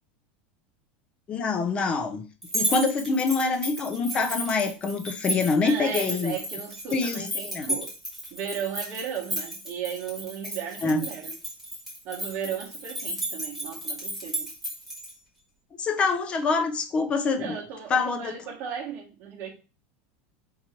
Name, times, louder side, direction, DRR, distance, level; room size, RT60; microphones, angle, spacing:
voice 1, 1.3-2.3 2.5-6.4 6.9-7.8 10.8-11.0 15.8-17.6 17.9-18.4, left 4 dB, 20° left, 0.5 m, -25 dB
sound 1, 2.4-15.1, right 1 dB, ahead, 1.5 m, -33 dB
voice 2, 5.6-7.9 8.3-11.3 12.0-14.5 17.4-19.5, right 8 dB, 35° right, 1.2 m, -35 dB
3.8 x 2.9 x 4.3 m
supercardioid pair, 165°, 6 cm